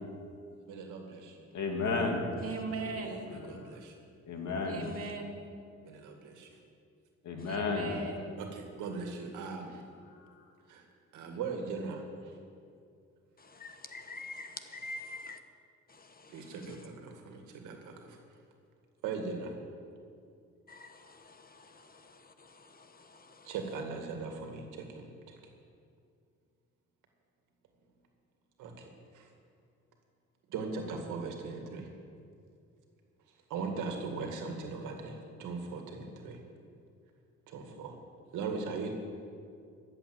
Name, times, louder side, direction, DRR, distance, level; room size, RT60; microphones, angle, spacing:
voice 1, 0.7-1.4 3.3-3.9 5.8-6.6 8.4-9.8 10.7-10.9 11.1-12.0 16.3-18.2 19.0-19.5 23.4-25.4 28.6-28.9 29.1-29.3 30.5-31.9 33.5-36.4 37.5-38.0 38.3-38.9, right 4 dB, 90° right, 3 dB, 2.1 m, -39 dB
voice 2, 1.5-2.3 2.9-3.0 3.3-3.5 4.3-4.8 7.2-7.9 10.2-10.3, left 3 dB, 70° left, 2 dB, 2.4 m, -33 dB
voice 3, 2.4-3.3 4.7-5.4 7.4-8.3, right 3 dB, 50° right, 1 dB, 2.4 m, -39 dB
voice 4, 13.6-15.4 20.7-21.6, left 3 dB, 30° left, 8 dB, 1.1 m, -44 dB
14.0 x 7.9 x 7.9 m, 2.3 s
cardioid pair, 90°, 30 cm